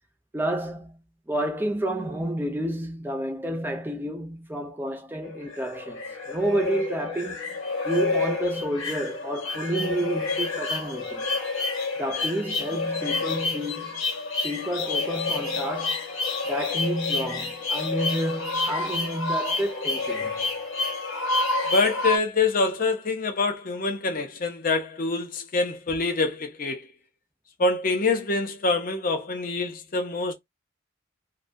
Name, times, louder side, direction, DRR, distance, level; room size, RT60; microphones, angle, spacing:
voice 1, 0.3-7.6 7.8-11.3 12.0-14.0 14.4-16.0 16.5-20.4, right 1 dB, 10° right, 0.4 m, -30 dB
sound 1, 5.2-22.2, left 3 dB, 70° left, 0.8 m, -29 dB
voice 2, 21.7-26.8 27.6-30.3, left 3 dB, 40° left, 0.5 m, -25 dB
2.2 x 2.2 x 2.5 m
head